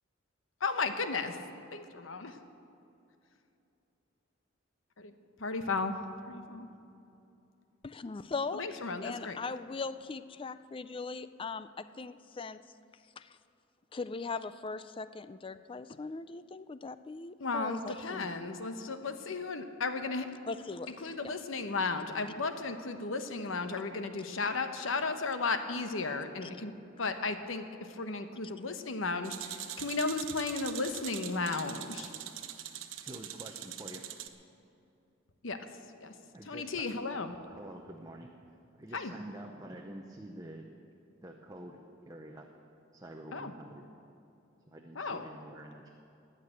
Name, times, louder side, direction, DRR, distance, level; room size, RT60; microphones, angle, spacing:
voice 1, 0.6-1.4 1.7-2.3 5.0-5.1 5.4-5.9 6.3-6.7 8.5-9.4 17.4-20.3 21.0-32.1 35.4-35.7 36.0-36.1 36.4-37.4 38.9-39.1 43.3-43.5 44.9-45.3, left 3 dB, 80° left, 8 dB, 1.0 m, -34 dB
voice 2, 7.8-12.6 13.2-13.4 13.9-18.3 20.5-20.9, left 4 dB, 25° left, 14 dB, 0.4 m, -40 dB
sound 1, 29.2-34.3, right 11 dB, 75° right, 0.9 m, -43 dB
voice 3, 33.0-34.1 36.3-36.9 37.5-38.3 38.8-40.7 41.2-42.5 42.9-43.8 44.7-45.9, right 1 dB, 20° right, 2 dB, 0.7 m, -47 dB
20.0 x 6.7 x 8.7 m, 2.7 s
head